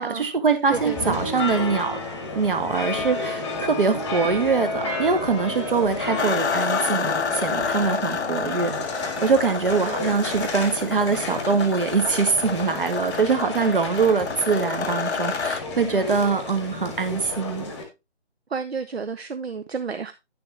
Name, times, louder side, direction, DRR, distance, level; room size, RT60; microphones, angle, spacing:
voice 1, 0.0-2.0 2.3-17.6, right 5 dB, 50° right, 1.6 m, -23 dB
sound 1, 0.7-17.8, left 3 dB, 5° left, 1.2 m, -31 dB
voice 2, 0.7-1.2 9.8-10.4 15.9-16.1 18.5-20.1, right 5 dB, 65° right, 0.8 m, -31 dB
sound 2, 6.2-15.6, left 5 dB, 80° left, 0.7 m, -29 dB
10.0 x 6.8 x 3.4 m
figure-of-eight pair, 150°, 34 cm